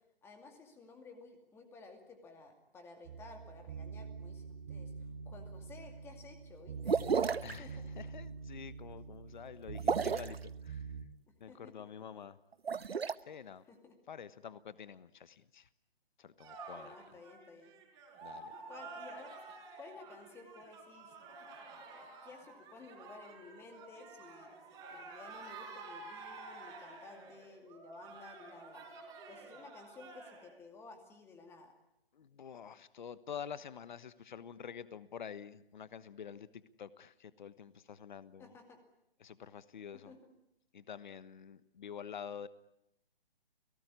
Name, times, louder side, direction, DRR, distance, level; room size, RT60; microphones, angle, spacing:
voice 1, 0.2-7.9 11.3-12.1 13.7-14.0 16.7-17.7 18.7-19.4 19.8-21.1 21.8-24.6 24.9-28.9 29.3-31.7 38.4-38.8 39.9-40.3, left 3 dB, 10° left, 5 dB, 2.4 m, -55 dB
sound 1, 3.0-11.1, right 5 dB, 35° right, 2.5 m, -46 dB
sound 2, 6.9-7.6 9.8-10.4 12.5-13.1, right 6 dB, 80° right, 1.1 m, -31 dB
voice 2, 7.4-10.9 11.4-12.4 12.8-13.6 14.1-15.7 16.2-16.9 18.2-18.5 32.1-36.5 36.8-38.5 39.2-40.1 40.7-42.5, left 7 dB, 50° left, 16 dB, 1.2 m, -48 dB
sound 3, 16.4-30.5, right 3 dB, 10° right, 4.8 m, -50 dB
29.0 x 18.5 x 9.6 m, 0.83 s
hypercardioid pair, 155°, 30 cm